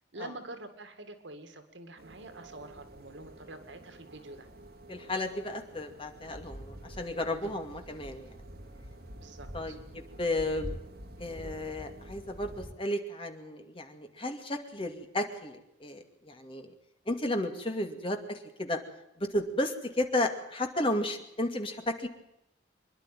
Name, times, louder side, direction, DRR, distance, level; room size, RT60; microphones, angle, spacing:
voice 1, 0.1-4.5 7.4-7.5 9.2-9.8, right 2 dB, 85° right, 8 dB, 2.3 m, -46 dB
sound 1, 2.0-12.7, right 1 dB, 55° right, 2.7 m, -47 dB
voice 2, 4.9-8.4 9.5-10.7 11.2-16.7 17.1-18.8 19.2-22.1, left 1 dB, 30° left, 5 dB, 2.4 m, -33 dB
25.5 x 11.5 x 9.2 m, 0.84 s
head